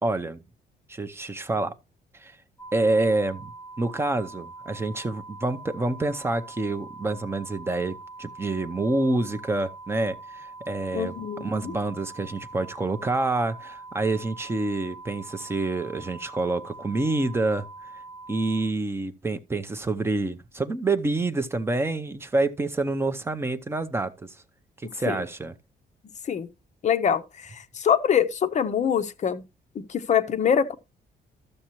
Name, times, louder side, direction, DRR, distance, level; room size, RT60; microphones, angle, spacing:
voice 1, 0.0-0.4 0.9-1.7 2.2-2.4 2.7-3.5 3.8-11.1 11.4-17.7 18.3-24.3 24.9-25.5, right 2 dB, 15° right, 0.5 m, -27 dB
sound 1, 2.6-18.6, right 3 dB, 20° left, 1.8 m, -43 dB
voice 2, 10.9-11.7 25.1-25.2 26.3-26.5 26.8-29.4 29.8-30.7, left 8 dB, 40° left, 0.6 m, -24 dB
12.5 x 6.5 x 3.0 m
cardioid pair, 160°, 18 cm